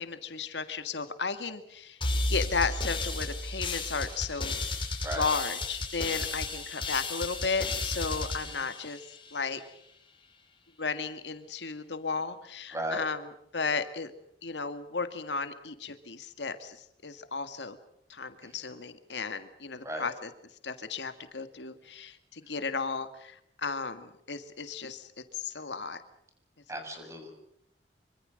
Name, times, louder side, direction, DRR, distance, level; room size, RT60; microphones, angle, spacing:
voice 1, 0.0-2.0 2.3-4.5 5.2-9.0 9.3-9.6 10.8-13.2 13.5-14.1 14.4-17.8 18.1-20.3 20.6-26.0, left 4 dB, 80° left, 9 dB, 1.9 m, -34 dB
sound 1, 2.0-9.5, left 2 dB, 30° left, 6.1 m, -33 dB
voice 2, 12.7-13.1 18.4-18.6 19.8-20.1 26.7-27.3, right 1 dB, 15° right, 5 dB, 6.6 m, -36 dB
26.0 x 25.0 x 6.5 m, 0.72 s
head